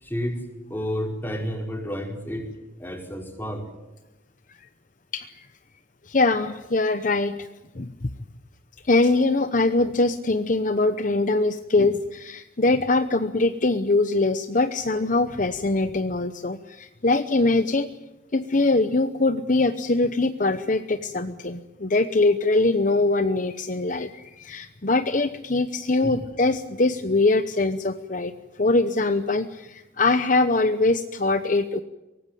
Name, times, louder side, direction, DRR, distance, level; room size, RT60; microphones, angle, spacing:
voice 1, 0.0-0.4 0.7-2.5 2.8-3.6 26.0-26.2, equal, 10° left, 2 dB, 4.9 m, -30 dB
voice 2, 5.1-5.5 6.1-7.5 7.7-8.1 8.8-17.9 18.3-31.8, left 2 dB, 45° left, 10 dB, 0.9 m, -23 dB
23.5 x 19.0 x 9.2 m, 1.0 s
head